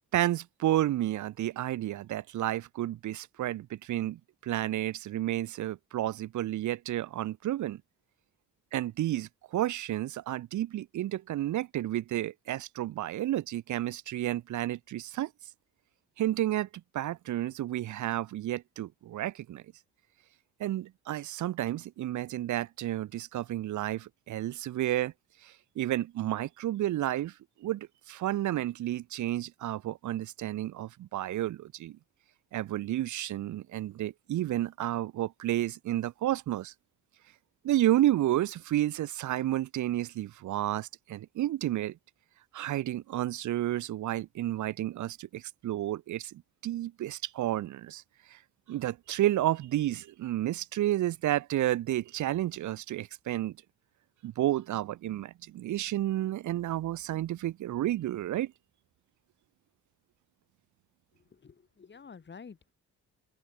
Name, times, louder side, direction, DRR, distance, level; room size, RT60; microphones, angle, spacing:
voice 1, 0.1-7.8 8.7-15.3 16.2-16.7 16.9-19.6 20.6-25.1 25.4-32.0 32.5-36.7 37.6-42.0 42.5-48.0 48.3-48.4 48.7-53.6 54.2-58.5, right 13 dB, 75° right, 1.3 m, -31 dB
voice 2, 61.1-62.7, left 5 dB, 35° left, 3.6 m, -50 dB
open air
cardioid pair, 90°, 30 cm